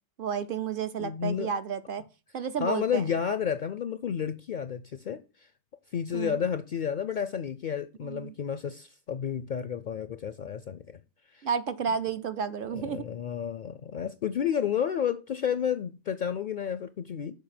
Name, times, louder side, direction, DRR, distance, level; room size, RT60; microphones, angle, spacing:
voice 1, 0.2-2.0 2.3-3.0 6.1-6.4 8.0-8.3 11.4-13.0, right 7 dB, 55° right, 0.7 m, -31 dB
voice 2, 1.0-1.5 2.6-5.5 5.9-11.0 11.3-11.5 12.7-17.3, left 8 dB, 60° left, 0.5 m, -31 dB
7.1 x 4.9 x 5.7 m
omnidirectional pair, 1.2 m